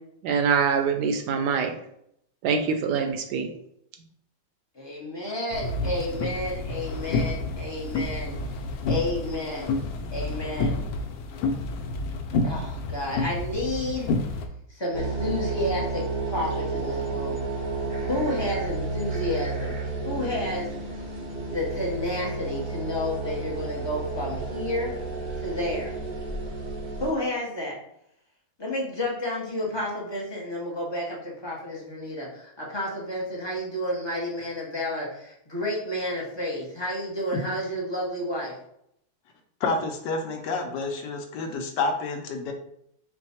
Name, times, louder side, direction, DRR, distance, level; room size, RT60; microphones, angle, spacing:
voice 1, 0.2-1.7 2.4-3.5, right 6 dB, 75° right, 6 dB, 1.0 m, -24 dB
voice 2, 4.8-8.4 8.9-9.7 10.1-10.8 12.4-14.1 14.8-17.4 18.1-19.7 20.0-20.7 21.5-24.9 25.4-25.9 27.0-27.8 28.6-38.5, left 1 dB, 30° left, -4 dB, 0.4 m, -31 dB
sound 1, 5.5-14.5, left 3 dB, 90° left, 1.3 m, -29 dB
sound 2, 14.9-27.1, right 3 dB, 50° right, 0.5 m, -31 dB
voice 3, 39.6-42.5, left 3 dB, 70° left, 3 dB, 1.2 m, -29 dB
4.6 x 2.2 x 4.1 m, 0.73 s
omnidirectional pair, 2.0 m